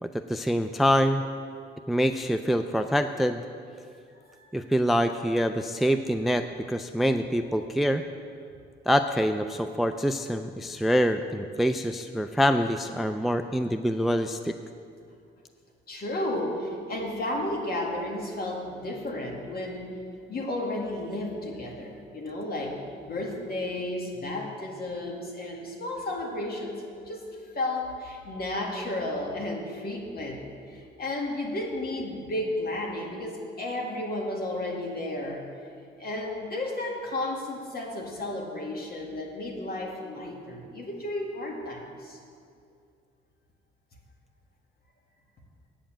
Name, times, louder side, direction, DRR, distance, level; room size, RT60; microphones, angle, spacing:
voice 1, 0.0-1.2 1.9-3.4 4.5-8.0 8.9-14.5, equal, ahead, 8 dB, 0.3 m, -25 dB
voice 2, 15.9-19.9 20.3-30.4 30.7-35.5 36.0-42.2, left 1 dB, 50° left, 0 dB, 2.0 m, -33 dB
8.8 x 7.1 x 7.4 m, 2.4 s
cardioid pair, 90°, 20 cm